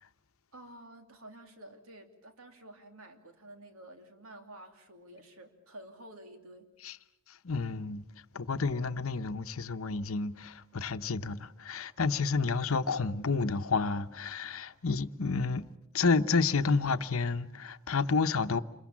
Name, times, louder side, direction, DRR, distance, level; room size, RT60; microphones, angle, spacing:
voice 1, 0.5-6.7, right 1 dB, 75° right, 2.9 m, -51 dB
voice 2, 7.3-8.0 8.3-15.7 15.9-18.6, left 4 dB, 75° left, 0.9 m, -30 dB
28.0 x 22.5 x 7.3 m
head